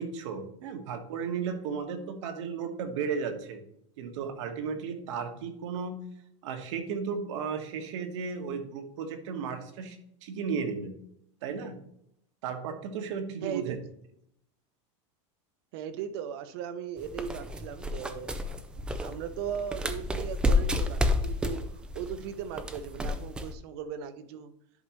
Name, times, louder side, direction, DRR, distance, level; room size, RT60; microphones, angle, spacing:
voice 1, 0.0-3.6 4.0-6.0 6.4-10.9 11.4-11.8 12.4-13.8, right 6 dB, 70° right, 6 dB, 1.3 m, -34 dB
voice 2, 13.4-13.8 15.7-18.4 18.7-21.6 21.9-24.5, right 8 dB, 50° right, 12 dB, 0.8 m, -37 dB
sound 1, 17.0-23.5, left 2 dB, 5° right, 0.3 m, -30 dB
11.0 x 5.4 x 3.1 m, 0.73 s
supercardioid pair, 180°, 16 cm